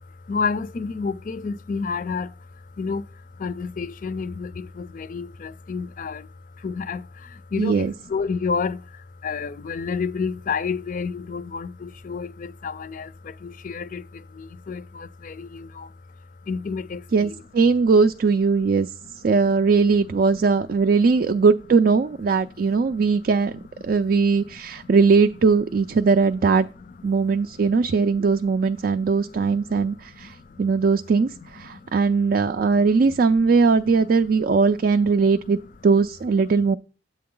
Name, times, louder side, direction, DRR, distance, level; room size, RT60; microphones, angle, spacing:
voice 1, 0.3-6.3 6.6-15.9 16.4-17.3 19.4-19.5 20.0-20.5 22.4-24.0 24.3-24.9 26.8-27.1 27.6-27.8 28.6-30.6 31.4-31.9 32.6-32.9 34.0-34.2 35.2-35.3 36.5-36.6, left 5 dB, 45° left, 0.4 m, -31 dB
voice 2, 7.6-7.9 17.1-18.9 19.2-23.5 23.8-26.7 27.0-35.6 35.8-36.8, right 4 dB, 50° right, 0.4 m, -20 dB
10.0 x 7.7 x 3.8 m
head